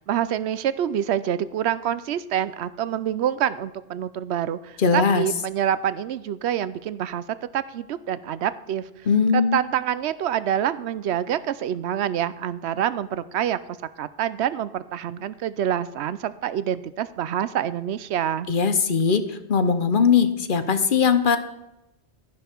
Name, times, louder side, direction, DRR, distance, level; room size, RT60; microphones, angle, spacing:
voice 1, 0.1-7.2 7.5-8.8 9.3-13.6 14.0-18.5, right 10 dB, 75° right, 15 dB, 0.8 m, -26 dB
voice 2, 4.8-5.3 9.1-9.6 18.5-21.4, left 6 dB, 55° left, 10 dB, 0.9 m, -20 dB
11.0 x 10.5 x 4.5 m, 0.91 s
omnidirectional pair, 1.1 m